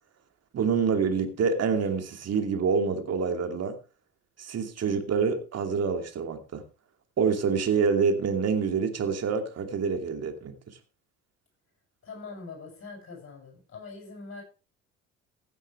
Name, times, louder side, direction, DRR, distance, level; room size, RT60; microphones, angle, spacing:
voice 1, 0.5-3.8 4.4-6.6 7.2-10.5, right 5 dB, 45° right, 2.7 m, -26 dB
voice 2, 12.0-14.4, left 4 dB, 35° left, 7.4 m, -43 dB
16.0 x 9.0 x 3.4 m
hypercardioid pair, 55°, 35 cm